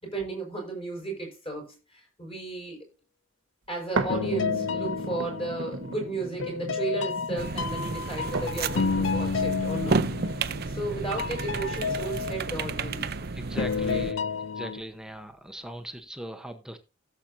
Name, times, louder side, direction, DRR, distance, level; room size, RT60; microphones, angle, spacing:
voice 1, 0.0-2.8 3.7-10.4 10.7-13.2 13.9-14.0, right 2 dB, 30° left, 5.6 m, -34 dB
sound 1, 4.0-13.9 14.5-14.6, right 2 dB, 85° right, 1.3 m, -37 dB
sound 2, 4.1-6.0 6.4-10.9 11.2-13.1 13.6-14.8, left 5 dB, 70° left, 0.5 m, -31 dB
sound 3, 7.4-14.1, right 4 dB, 50° right, 0.6 m, -32 dB
voice 2, 13.3-14.3 14.5-16.8, right 1 dB, 5° right, 0.9 m, -39 dB
16.5 x 7.4 x 2.7 m
head